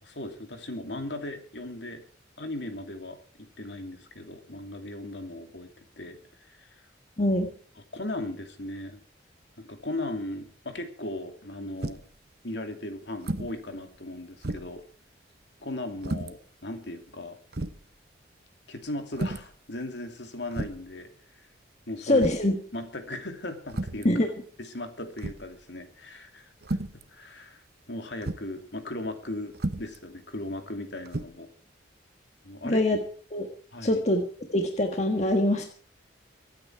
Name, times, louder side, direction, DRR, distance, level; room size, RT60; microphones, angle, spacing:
voice 1, 0.0-2.0 2.4-6.8 7.2-7.3 7.9-9.0 9.6-12.0 12.4-14.8 15.6-17.4 18.7-21.5 21.9-22.3 22.7-24.1 24.6-26.8 27.1-31.5 32.4-32.8 33.7-34.0, left 1 dB, 65° left, 6 dB, 2.7 m, -37 dB
voice 2, 7.2-7.5 22.0-22.6 24.0-24.3 32.6-33.0 33.3-33.5 33.8-34.2 34.5-35.6, left 1 dB, 35° left, 4 dB, 1.6 m, -23 dB
sound 1, 11.8-12.2 13.2-13.6 14.0-14.1 14.4-14.8 16.0-16.3 17.1-17.2 17.5-17.8 19.1-19.5 20.5-20.9 22.2-22.5 23.7-24.1 25.2-25.6 26.6-27.0 28.2-28.5 29.5-30.0 31.1-31.3, right 2 dB, 55° right, 1.0 m, -33 dB
23.5 x 9.4 x 4.7 m, 0.42 s
head